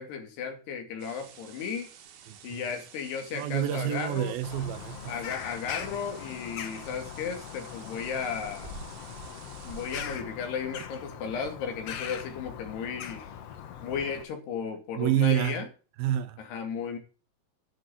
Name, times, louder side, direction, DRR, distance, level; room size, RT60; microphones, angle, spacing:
voice 1, 0.0-1.9 2.4-4.3 5.1-8.8 9.6-13.2 13.8-15.7 16.4-17.0, left 6 dB, 85° left, 4.7 m, -35 dB
sound 1, 1.0-10.2, right 6 dB, 60° right, 2.6 m, -49 dB
voice 2, 2.3-2.6 3.3-5.1 15.0-15.6 16.0-16.4, right 11 dB, 75° right, 2.8 m, -28 dB
Bird vocalization bird call bird song, 4.4-14.2, left 8 dB, 65° left, 1.5 m, -41 dB
10.5 x 7.6 x 9.6 m
omnidirectional pair, 4.6 m